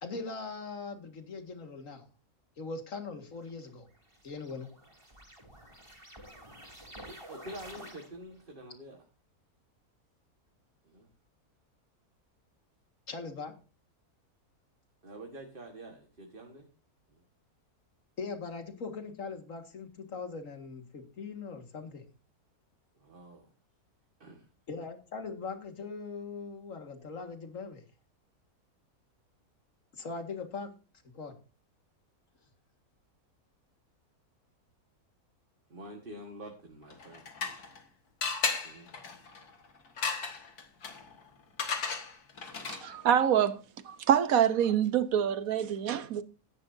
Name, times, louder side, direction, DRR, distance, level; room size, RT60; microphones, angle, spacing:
voice 1, 0.0-2.0 2.6-3.9 4.2-4.7 13.1-13.5 18.2-22.0 24.7-27.8 29.9-30.7 31.1-31.3, left 4 dB, 55° left, 2.2 m, -40 dB
sound 1, 3.5-8.4, equal, 20° right, 3.7 m, -50 dB
voice 2, 7.1-9.0 10.8-11.1 15.0-16.7 17.1-17.2 23.0-23.5 24.2-24.5 35.7-37.2 38.6-38.9, right 1 dB, 35° right, 1.7 m, -47 dB
sound 2, 36.9-37.8 38.2-43.0, left 5 dB, 75° left, 2.3 m, -36 dB
voice 3, 42.7-43.6 43.8-46.2, right 9 dB, 65° right, 1.3 m, -26 dB
15.0 x 11.0 x 2.7 m
omnidirectional pair, 1.6 m